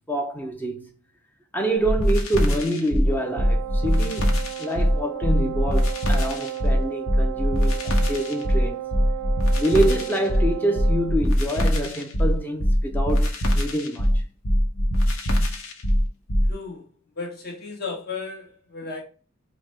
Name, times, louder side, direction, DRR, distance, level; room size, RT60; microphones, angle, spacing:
voice 1, 0.1-0.9 1.5-8.8 9.6-14.2, right 1 dB, 10° left, 0.5 m, -26 dB
sound 1, 1.8-16.5, equal, 80° left, 0.9 m, -22 dB
Wind instrument woodwind instrument, 3.0-11.2, right 13 dB, 90° right, 0.3 m, -34 dB
voice 2, 16.5-16.9 17.1-19.0, left 4 dB, 50° left, 1.2 m, -34 dB
5.0 x 2.1 x 3.1 m
head